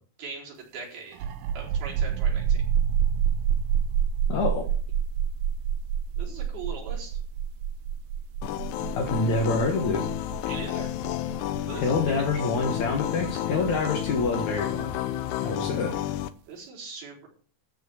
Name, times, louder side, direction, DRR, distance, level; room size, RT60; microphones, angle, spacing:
voice 1, 0.2-1.3 1.6-2.6 6.2-7.2 10.5-10.9 11.7-12.2 16.5-17.3, right 4 dB, 65° right, -3 dB, 6.1 m, -40 dB
sound 1, 1.1-14.5, right 8 dB, 85° right, 1.8 m, -28 dB
voice 2, 4.3-4.6 9.0-10.1 11.8-14.9 15.4-15.9, left 3 dB, 55° left, 1 dB, 2.4 m, -26 dB
sound 2, 8.4-16.3, left 12 dB, 85° left, 2.8 m, -31 dB
13.5 x 6.3 x 6.4 m, 0.43 s
omnidirectional pair, 4.7 m